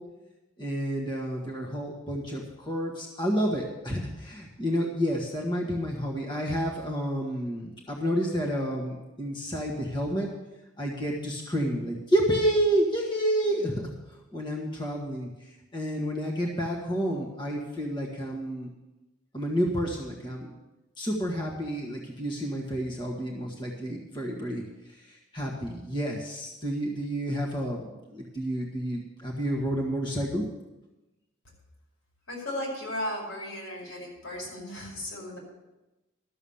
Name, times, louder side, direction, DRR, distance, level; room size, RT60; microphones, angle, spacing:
voice 1, 0.6-10.3 10.8-13.9 14.3-18.7 19.3-20.5 21.0-24.6 25.0-30.4, equal, 20° left, -2 dB, 1.5 m, -30 dB
voice 2, 32.3-35.4, left 1 dB, 85° left, -3 dB, 5.7 m, -35 dB
13.0 x 7.2 x 7.1 m, 1.0 s
head